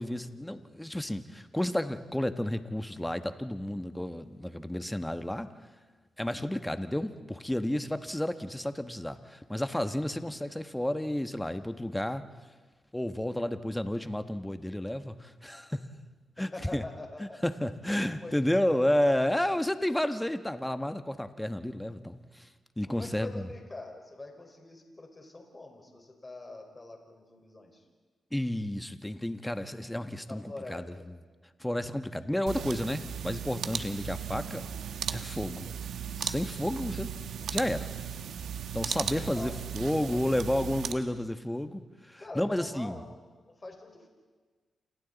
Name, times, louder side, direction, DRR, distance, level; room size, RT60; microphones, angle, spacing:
voice 1, 0.0-5.5 6.2-12.2 12.9-15.8 16.4-16.8 17.2-22.5 22.8-23.5 28.3-30.9 31.6-34.7 35.1-35.7 36.2-37.2 37.5-37.9 38.7-43.0, left 1 dB, 10° left, 9 dB, 1.2 m, -31 dB
voice 2, 16.5-17.4 18.0-19.0 22.9-27.8 30.3-31.1 39.2-39.5 39.9-40.8 42.2-43.1 43.5-44.1, left 2 dB, 25° left, 2 dB, 4.8 m, -45 dB
sound 1, 32.5-40.9, right 8 dB, 85° right, 1.0 m, -36 dB
28.5 x 28.0 x 4.1 m, 1.4 s
cardioid pair, 85°, 0 cm